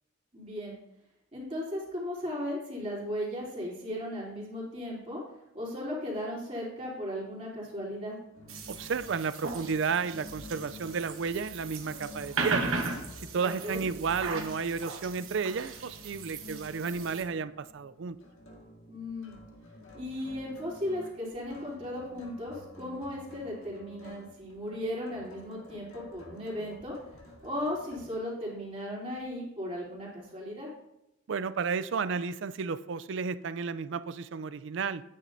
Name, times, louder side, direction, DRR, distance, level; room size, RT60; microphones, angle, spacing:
voice 1, 0.3-0.7 1.3-5.2 5.5-8.2 13.4-13.8 18.9-19.3 19.9-26.9 27.4-30.7, left 1 dB, 30° right, -6 dB, 3.3 m, -36 dB
sound 1, 8.3-28.1, left 2 dB, 80° left, 1.8 m, -50 dB
sound 2, 8.5-17.2, right 4 dB, 80° right, 1.2 m, -37 dB
voice 2, 8.7-12.7 13.3-18.2 31.3-35.0, right 5 dB, 60° right, 15 dB, 0.4 m, -32 dB
9.8 x 9.2 x 2.7 m, 0.84 s
head